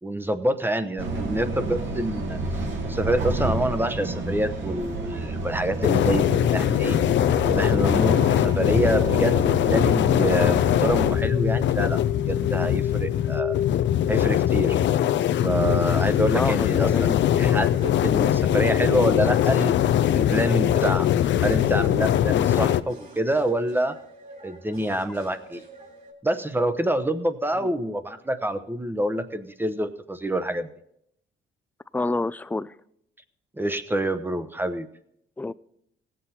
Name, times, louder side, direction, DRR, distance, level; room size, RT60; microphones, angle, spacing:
voice 1, 0.0-2.5 2.8-7.0 7.4-13.6 14.1-14.8 15.4-19.8 20.1-21.1 21.4-24.0 24.4-25.6 26.2-30.7 33.6-34.9, right 1 dB, 10° right, 11 dB, 0.8 m, -27 dB
sound 1, 1.0-11.2, right 2 dB, 70° right, 2.2 m, -31 dB
sound 2, 5.8-22.8, left 11 dB, 65° left, 0.5 m, -21 dB
sound 3, 15.8-26.1, right 3 dB, 40° right, 2.8 m, -47 dB
voice 2, 16.3-17.2 27.6-27.7 31.9-32.7 35.4-35.5, left 2 dB, 10° left, 16 dB, 0.3 m, -28 dB
17.5 x 7.7 x 4.2 m, 0.73 s
cardioid pair, 90°, 20 cm